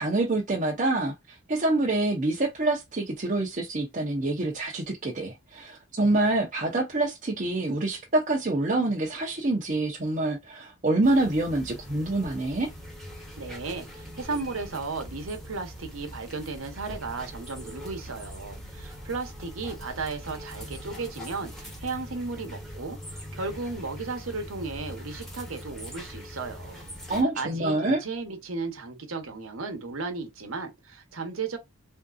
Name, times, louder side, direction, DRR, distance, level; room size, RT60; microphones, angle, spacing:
voice 1, 0.0-12.7 27.1-28.0, right 2 dB, 40° right, 0.7 m, -26 dB
sound 1, 11.0-27.2, equal, ahead, 1.1 m, -42 dB
voice 2, 13.4-26.8 27.3-31.6, right 4 dB, 90° right, 0.9 m, -35 dB
3.6 x 2.6 x 2.3 m
head